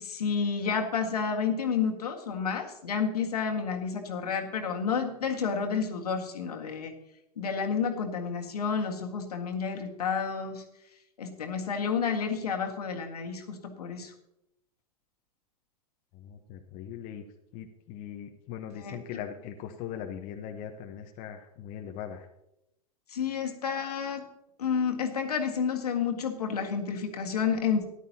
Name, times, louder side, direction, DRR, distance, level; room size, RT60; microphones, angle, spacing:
voice 1, 0.0-6.9 7.4-10.6 11.2-14.1 18.8-19.0 23.1-24.2 24.6-27.8, left 6 dB, 75° left, 3 dB, 1.8 m, -30 dB
voice 2, 16.1-17.2 17.5-22.3, left 9 dB, 40° left, 4 dB, 1.1 m, -40 dB
14.0 x 11.0 x 2.9 m, 0.84 s
hypercardioid pair, 100°, 20 cm